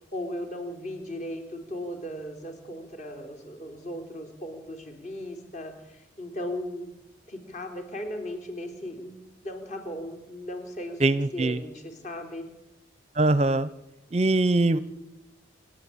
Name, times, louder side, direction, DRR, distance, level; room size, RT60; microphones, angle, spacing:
voice 1, 0.1-6.9 7.3-11.0 11.3-12.5, left 1 dB, 35° left, 5 dB, 3.7 m, -37 dB
voice 2, 11.0-11.6 13.2-13.7 14.1-14.8, right 2 dB, 30° right, 16 dB, 0.6 m, -22 dB
28.0 x 10.5 x 8.7 m, 0.97 s
head